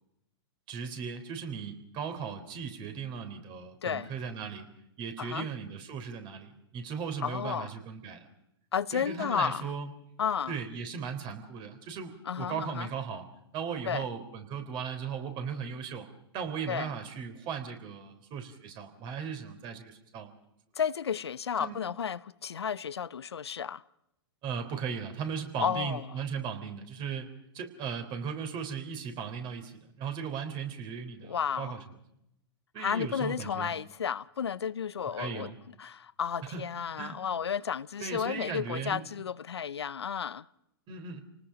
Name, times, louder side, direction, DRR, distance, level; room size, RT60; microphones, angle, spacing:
voice 1, 0.7-4.7 5.0-8.3 8.9-9.9 10.5-13.3 13.5-16.1 16.3-20.3 21.6-21.8 24.4-31.8 32.7-33.7 35.2-35.5 36.5-36.6 37.0-37.2 38.0-39.0 40.9-41.2, right 6 dB, 35° right, 3.8 m, -37 dB
voice 2, 7.2-7.7 8.7-9.7 10.2-10.6 12.3-12.9 13.9-14.0 16.7-16.9 20.8-23.8 25.6-26.1 31.2-31.8 32.8-35.5 35.8-40.5, left 7 dB, 85° left, 0.7 m, -32 dB
29.0 x 19.5 x 5.2 m
hypercardioid pair, 115°, 13 cm